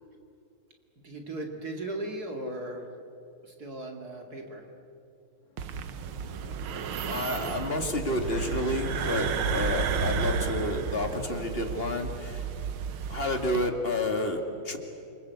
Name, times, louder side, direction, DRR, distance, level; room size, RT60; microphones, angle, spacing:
voice 1, 1.0-2.9 3.4-4.6, right 1 dB, 45° right, 2 dB, 2.8 m, -37 dB
sound 1, 5.5-11.0, left 5 dB, 65° left, 2.4 m, -49 dB
sound 2, 5.6-13.7, right 6 dB, 80° right, 1.9 m, -32 dB
voice 2, 7.0-12.5 13.1-14.8, left 2 dB, 30° left, 4 dB, 2.5 m, -30 dB
28.5 x 25.0 x 8.3 m, 2.7 s
omnidirectional pair, 2.3 m